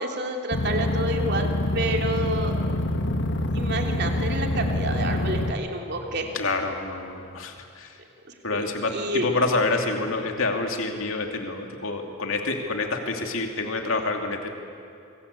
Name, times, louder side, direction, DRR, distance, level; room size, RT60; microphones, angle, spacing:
voice 1, 0.0-1.5 1.7-2.5 3.5-6.3 8.5-9.3, right 1 dB, 50° right, 2 dB, 3.2 m, -29 dB
sound 1, 0.5-5.5, left 1 dB, 55° left, 1.3 m, -26 dB
voice 2, 6.3-8.0 8.4-14.6, left 3 dB, 70° left, 3 dB, 2.6 m, -27 dB
26.5 x 24.5 x 8.4 m, 2.6 s
head